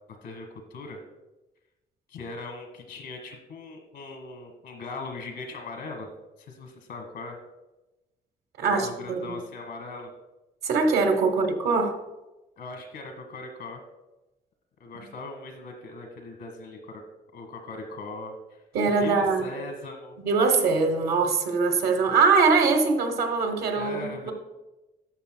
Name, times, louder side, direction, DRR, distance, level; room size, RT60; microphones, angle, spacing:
voice 1, 0.2-1.0 2.1-6.1 6.4-7.4 8.7-10.1 12.6-13.8 14.8-17.0 17.3-18.6 19.0-20.1 23.7-24.3, left 3 dB, 90° left, 5 dB, 1.3 m, -39 dB
voice 2, 8.6-9.4 10.6-12.0 14.9-15.1 18.7-19.5 20.2-24.3, right 4 dB, 75° right, 5 dB, 1.1 m, -23 dB
12.0 x 5.9 x 2.3 m, 1.0 s
cardioid pair, 120°, 16 cm